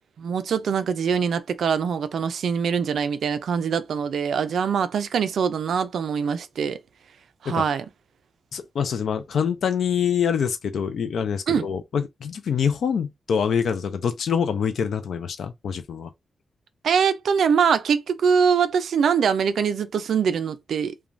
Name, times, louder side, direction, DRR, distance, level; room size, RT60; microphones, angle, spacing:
voice 1, 0.2-6.8 7.4-7.9 11.5-11.7 16.8-20.9, right 6 dB, 75° right, 0.3 m, -23 dB
voice 2, 8.5-16.1, left 7 dB, 70° left, 0.4 m, -25 dB
3.2 x 2.2 x 2.5 m
wide cardioid pair, 180°, 0 cm